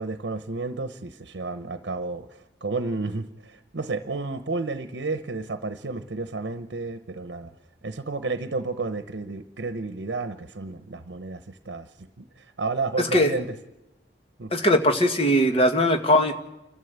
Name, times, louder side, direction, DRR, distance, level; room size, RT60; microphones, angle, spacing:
voice 1, 0.0-7.5 7.8-13.5 14.4-14.5, right 3 dB, 80° right, 10 dB, 0.9 m, -32 dB
voice 2, 13.0-13.3 14.5-16.3, equal, 30° left, 5 dB, 1.5 m, -20 dB
29.0 x 13.0 x 8.1 m, 0.96 s
head